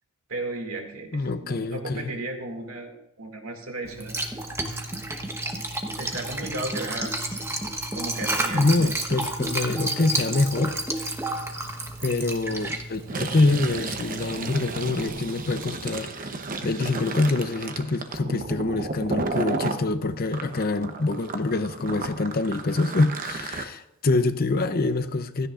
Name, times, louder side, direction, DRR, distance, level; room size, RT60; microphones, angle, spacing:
voice 1, 0.3-4.1 6.0-7.1 7.9-8.9, right 2 dB, 70° right, 2.3 m, -34 dB
voice 2, 1.1-2.1 7.6-7.7 8.5-10.8 12.0-25.5, left 2 dB, 45° left, 0.6 m, -25 dB
Liquid, 3.8-15.1, right 1 dB, 10° right, 1.0 m, -31 dB
Fill (with liquid), 13.0-19.8 20.3-23.6, right 3 dB, 40° right, 0.9 m, -33 dB
16.0 x 14.0 x 2.5 m
head